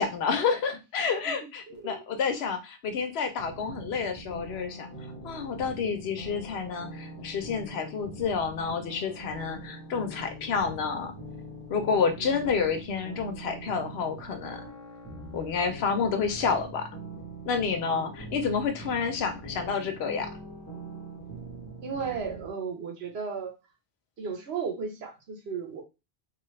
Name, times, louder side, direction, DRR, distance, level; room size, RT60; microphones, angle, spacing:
voice 1, 0.0-4.9 5.2-11.1 11.7-14.6 15.3-16.9 17.5-20.3, left 5 dB, 80° left, 6 dB, 0.9 m, -29 dB
voice 2, 1.7-2.1 12.2-12.5 17.9-18.1 21.8-23.5 24.2-25.8, right 6 dB, 80° right, 3 dB, 1.1 m, -35 dB
sound 1, 3.4-22.5, right 1 dB, 15° left, 0.8 m, -43 dB
2.9 x 2.4 x 3.1 m, 0.27 s
omnidirectional pair, 1.0 m